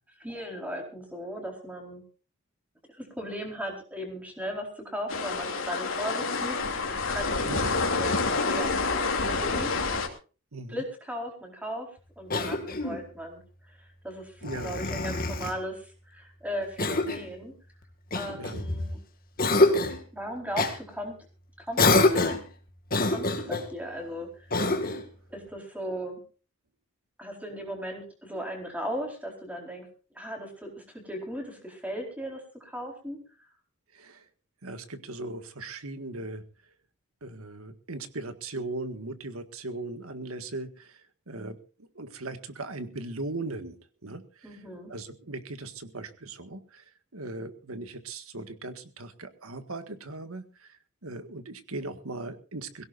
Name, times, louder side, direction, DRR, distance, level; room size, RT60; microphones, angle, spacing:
voice 1, 0.2-2.0 3.0-6.6 7.1-9.7 10.7-11.9 12.2-17.5 18.1-19.0 19.6-19.9 20.1-21.1 21.6-22.4 23.1-24.5 25.3-26.2 27.2-29.9 30.1-33.2 44.4-44.9, equal, 5° right, 1 dB, 4.4 m, -37 dB
sound 1, 5.1-10.1, left 4 dB, 75° left, 2.9 m, -28 dB
voice 2, 7.4-7.8 10.5-10.8 14.4-14.8 18.3-18.7 33.9-34.2 34.6-36.4 37.2-41.6 42.0-44.6 44.9-46.8 47.1-52.8, right 2 dB, 85° right, 9 dB, 1.8 m, -38 dB
Cough, 12.3-13.1 14.4-15.6 16.8-17.3 18.1-18.9 19.4-20.0 20.5-20.8 21.8-22.5 22.9-23.7 24.5-25.1, left 2 dB, 40° left, 2.0 m, -25 dB
22.0 x 17.0 x 2.6 m, 0.35 s
head